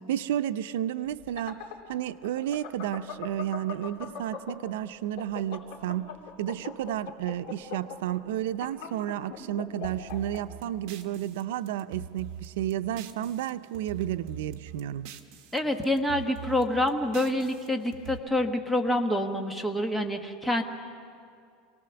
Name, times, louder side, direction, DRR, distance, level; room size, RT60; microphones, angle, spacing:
voice 1, 0.1-1.6 1.9-6.1 6.4-15.1, right 12 dB, 85° right, 0.6 m, -32 dB
sound 1, 1.1-4.7 5.0-10.4, left 8 dB, 60° left, 3.8 m, -39 dB
sound 2, 9.8-13.5 13.7-15.6 15.8-18.2, right 7 dB, 55° right, 1.5 m, -43 dB
voice 2, 15.5-20.6, left 1 dB, 5° left, 1.2 m, -27 dB
27.5 x 18.5 x 6.9 m
supercardioid pair, 165°, 0 cm